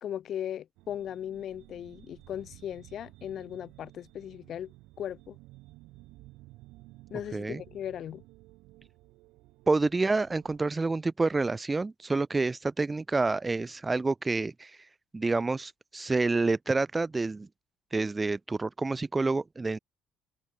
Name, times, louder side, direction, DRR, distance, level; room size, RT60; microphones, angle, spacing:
voice 1, 0.0-4.7 5.0-5.4 7.1-8.2, left 10 dB, 50° left, 1.0 m, -37 dB
sound 1, 0.8-10.6, right 20 dB, 65° right, 5.2 m, -54 dB
voice 2, 9.7-14.9 15.1-17.5 17.9-19.8, right 3 dB, 20° right, 1.3 m, -28 dB
figure-of-eight pair, 55°, 0 cm